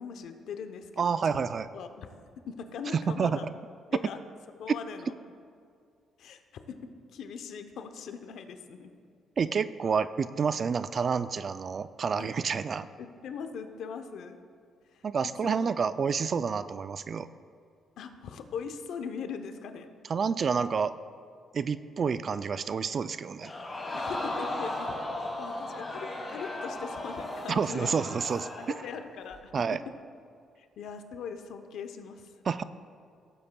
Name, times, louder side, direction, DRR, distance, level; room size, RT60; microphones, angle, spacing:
voice 1, 0.0-1.1 1.7-2.1 2.5-3.5 3.9-4.2 4.6-5.1 6.2-6.4 6.7-8.9 12.2-12.3 12.5-12.6 13.0-14.4 14.9-15.1 15.4-15.8 18.0-19.9 23.9-25.0 25.4-28.0 28.6-30.0 30.6-32.3, left 6 dB, 75° left, 7 dB, 0.7 m, -40 dB
voice 2, 1.0-1.7 2.9-3.4 9.4-12.9 15.0-17.3 20.1-20.9 21.5-23.5 27.5-28.5 29.5-29.8 32.5-32.6, right 6 dB, 45° right, 14 dB, 0.3 m, -29 dB
Crowd, 23.4-28.9 29.3-29.4, left 1 dB, 30° left, 2.4 m, -36 dB
16.5 x 8.2 x 2.3 m, 2.2 s
cardioid pair, 90°, 0 cm